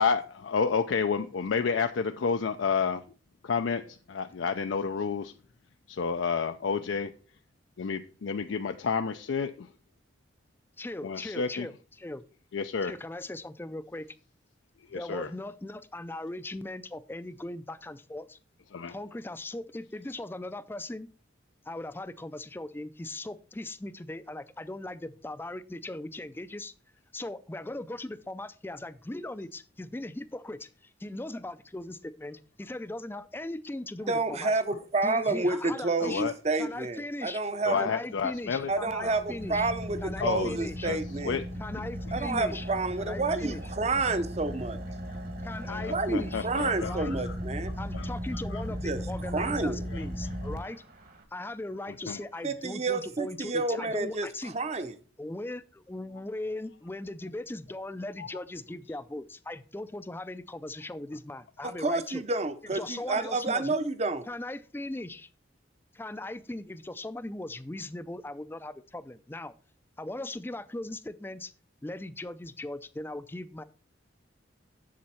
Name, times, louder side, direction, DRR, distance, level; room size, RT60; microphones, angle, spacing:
voice 1, 0.0-3.0 3.4-3.8 4.1-5.3 5.9-7.1 7.8-9.7 11.0-11.7 12.5-12.9 14.9-15.3 18.7-18.9 36.0-36.3 37.7-38.7 39.1-39.2 40.2-40.6 40.8-41.4 45.6-47.1 47.9-48.1 48.5-48.6 49.9-50.0 52.1-52.2, left 5 dB, 80° left, 0.4 m, -30 dB
voice 2, 10.8-12.2 12.8-14.1 14.9-18.4 18.9-21.1 21.6-26.7 27.1-34.5 35.0-36.2 36.6-37.4 37.7-39.7 40.0-40.9 41.6-42.7 43.0-43.6 45.4-46.5 46.8-47.1 47.8-50.8 51.3-54.5 55.2-62.2 62.6-63.8 64.3-65.3 65.9-69.5 70.0-71.5 71.8-73.6, left 2 dB, 10° left, 0.4 m, -39 dB
voice 3, 34.1-37.9 38.7-41.4 42.1-44.8 45.9-47.7 48.8-49.8 52.4-54.3 54.5-54.9 61.6-64.3, right 3 dB, 35° right, 0.7 m, -29 dB
Car / Idling, 38.3-51.2, equal, 50° right, 1.4 m, -37 dB
7.5 x 7.1 x 4.3 m
head